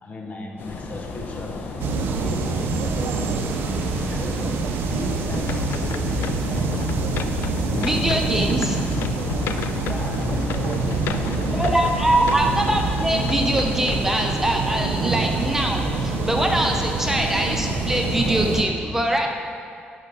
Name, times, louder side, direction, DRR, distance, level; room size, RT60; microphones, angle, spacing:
voice 1, 0.0-3.4 4.1-6.3 9.8-10.6, left 2 dB, 40° left, 2 dB, 1.0 m, -37 dB
sound 1, 0.6-18.6, left 3 dB, 65° left, 0.8 m, -35 dB
sound 2, 1.8-18.6, right 4 dB, 90° right, 0.5 m, -26 dB
sound 3, 5.3-15.6 16.1-16.2, left 8 dB, 85° left, 0.3 m, -32 dB
voice 2, 7.8-8.8 11.5-19.3, right 1 dB, 10° right, 2 dB, 0.6 m, -23 dB
11.0 x 4.7 x 3.9 m, 2.2 s
cardioid pair, 110°, 4 cm